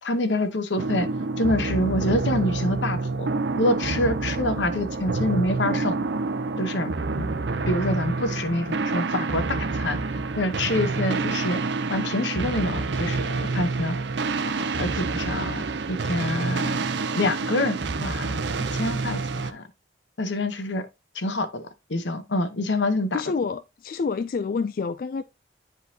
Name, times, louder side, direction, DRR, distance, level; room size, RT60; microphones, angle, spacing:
voice 1, 0.0-1.1 1.4-3.3 3.6-6.1 6.6-7.4 7.7-10.0 10.4-11.6 11.9-14.0 14.4-16.8 17.1-18.4 18.7-19.6 20.2-20.9 21.1-21.6 21.9-23.2, left 1 dB, 85° left, 1.0 m, -26 dB
sound 1, 0.8-19.5, right 3 dB, 75° right, 0.6 m, -28 dB
voice 2, 23.1-25.2, left 5 dB, 50° left, 0.3 m, -28 dB
10.0 x 4.0 x 2.7 m
head